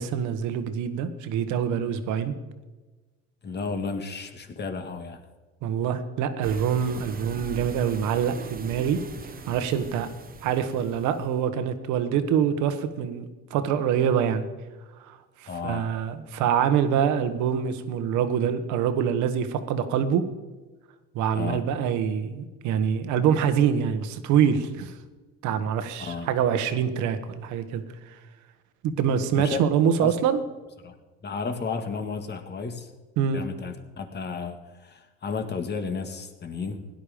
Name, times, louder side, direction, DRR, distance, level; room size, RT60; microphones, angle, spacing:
voice 1, 0.0-2.3 5.6-9.0 9.5-10.1 10.4-13.2 13.5-14.4 15.1-20.2 21.1-24.9 25.4-27.8 28.8-30.4 33.2-33.4, right 8 dB, 75° right, 10 dB, 1.4 m, -25 dB
voice 2, 3.4-5.2 6.9-7.0 15.5-15.9 21.4-21.7 26.1-26.3 29.4-29.6 30.0-30.2 30.8-31.0 31.2-32.9 33.3-36.8, left 5 dB, 35° left, 6 dB, 1.9 m, -33 dB
sound 1, 6.4-11.4, right 4 dB, 30° right, 1.2 m, -41 dB
17.0 x 11.0 x 5.1 m, 1.2 s
cardioid pair, 105°, 29 cm